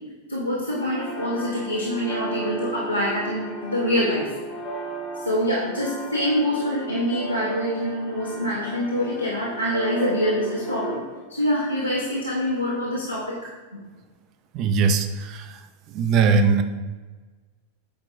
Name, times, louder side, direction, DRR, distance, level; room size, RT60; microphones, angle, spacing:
voice 1, 0.3-4.3 5.2-11.0 11.3-13.8, equal, 85° right, -6 dB, 1.0 m, -25 dB
sound 1, 0.7-11.0, right 2 dB, 15° left, 1.7 m, -35 dB
voice 2, 14.5-15.6 15.9-16.6, right 5 dB, 40° right, 9 dB, 0.5 m, -20 dB
8.3 x 4.5 x 2.7 m, 1.3 s
figure-of-eight pair, 90°, 0 cm